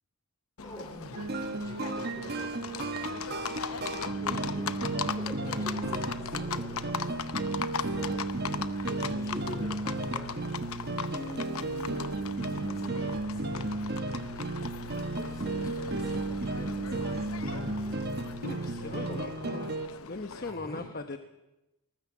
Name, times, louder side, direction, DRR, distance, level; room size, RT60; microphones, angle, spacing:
Livestock farm animals working animals, 0.6-20.5, left 6 dB, 80° left, 0.9 m, -39 dB
voice 1, 0.6-7.0 7.4-12.1 12.4-14.7 15.2-19.7 20.4-21.0, equal, 15° left, 1 dB, 4.4 m, -46 dB
sound 1, 1.2-19.9, right 2 dB, 50° right, 1.3 m, -34 dB
voice 2, 18.4-19.6 20.1-21.2, left 3 dB, 45° left, 7 dB, 1.0 m, -39 dB
21.0 x 19.5 x 7.3 m, 0.98 s
head